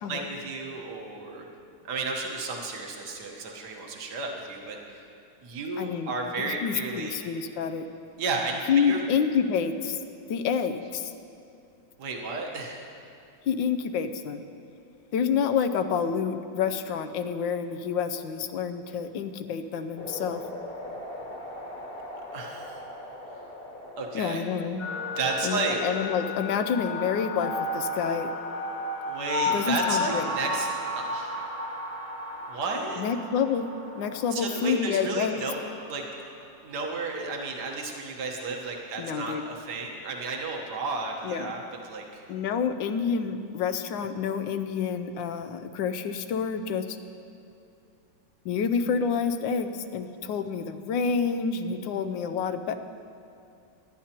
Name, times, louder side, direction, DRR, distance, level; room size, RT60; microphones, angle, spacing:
voice 1, 0.1-1.5 1.8-5.0 5.4-7.2 8.2-9.0 12.0-12.8 22.3-22.8 24.0-24.4 25.1-25.8 29.0-30.7 31.0-31.4 32.5-33.0 34.3-35.6 35.9-36.0 36.6-42.2, right 3 dB, 65° right, 1 dB, 1.8 m, -33 dB
voice 2, 5.8-6.1 6.4-7.9 8.7-10.0 10.3-11.1 13.5-14.4 15.1-20.4 24.1-24.8 25.4-28.3 29.5-30.3 33.0-33.7 33.9-35.4 39.0-39.4 41.2-41.5 42.3-47.0 48.4-52.8, left 6 dB, 85° left, 9 dB, 1.4 m, -28 dB
sound 1, 20.0-29.8, left 1 dB, 35° left, 1.4 m, -43 dB
sound 2, 24.8-36.4, left 2 dB, 60° left, 2.1 m, -33 dB
22.5 x 10.5 x 2.9 m, 2.6 s
omnidirectional pair, 2.0 m